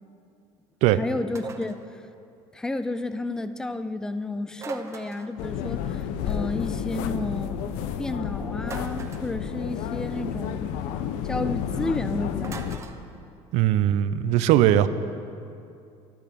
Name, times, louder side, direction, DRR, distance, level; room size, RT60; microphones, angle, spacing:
voice 1, 0.9-2.0 2.5-7.7 8.0-10.7 11.2-12.8, left 2 dB, 5° left, 11 dB, 0.4 m, -31 dB
sound 1, 1.4-1.9 4.6-5.4 8.6-9.3 12.4-13.0, right 5 dB, 25° right, 0.8 m, -39 dB
sound 2, 5.4-12.8, left 8 dB, 85° left, 0.9 m, -31 dB
voice 2, 13.5-14.9, right 12 dB, 65° right, 13 dB, 0.7 m, -19 dB
13.5 x 12.5 x 6.9 m, 2.5 s
cardioid pair, 165°, 12 cm